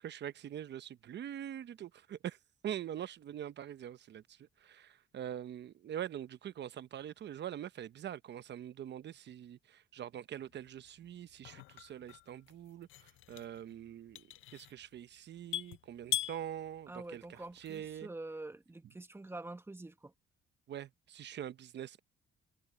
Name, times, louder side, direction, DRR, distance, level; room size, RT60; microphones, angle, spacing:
voice 1, 0.0-2.4 2.6-18.1 20.7-22.0, right 10 dB, 60° right, 0.9 m, -44 dB
sound 1, 10.5-18.0, left 13 dB, 80° left, 0.7 m, -43 dB
voice 2, 16.9-20.1, right 2 dB, 10° right, 1.3 m, -46 dB
cardioid pair, 90°, 20 cm